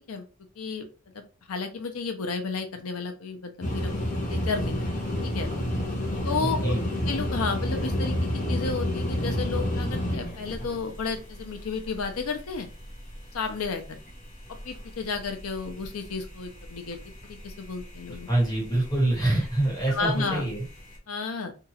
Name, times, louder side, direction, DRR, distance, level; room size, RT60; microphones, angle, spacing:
voice 1, 0.6-0.9 1.1-4.0 4.3-4.9 5.2-5.5 6.2-6.7 7.1-12.7 13.3-13.8 14.6-17.0 17.2-18.3 19.9-20.4 21.1-21.5, left 4 dB, 85° left, 7 dB, 0.6 m, -32 dB
sound 1, 3.6-13.8 14.1-21.0, left 1 dB, 35° left, 0.6 m, -30 dB
voice 2, 18.3-20.6, right 1 dB, 15° left, -4 dB, 1.3 m, -25 dB
2.9 x 2.4 x 2.8 m, 0.34 s
head